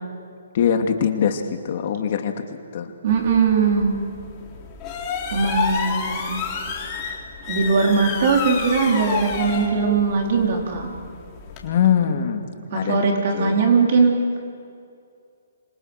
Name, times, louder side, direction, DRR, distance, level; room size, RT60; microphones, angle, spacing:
voice 1, 0.5-2.9 11.6-13.7, left 8 dB, 45° left, 5 dB, 2.6 m, -23 dB
voice 2, 3.0-4.0 5.3-6.4 7.5-10.9 12.7-14.2, right 5 dB, 50° right, 1 dB, 4.5 m, -20 dB
sound 1, 3.1-11.7, left 5 dB, 25° left, 4.0 m, -30 dB
26.5 x 26.0 x 6.8 m, 2.3 s
hypercardioid pair, 145°, 0 cm